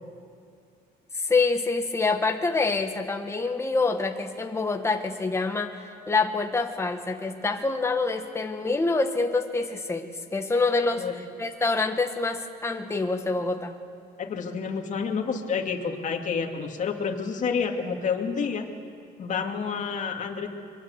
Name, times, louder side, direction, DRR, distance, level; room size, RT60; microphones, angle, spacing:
voice 1, 1.1-13.7, left 3 dB, 15° left, 4 dB, 1.6 m, -26 dB
voice 2, 14.2-18.7 19.2-20.5, left 5 dB, 45° left, 2 dB, 2.5 m, -29 dB
23.0 x 23.0 x 8.2 m, 2.3 s
cardioid pair, 110°, 17 cm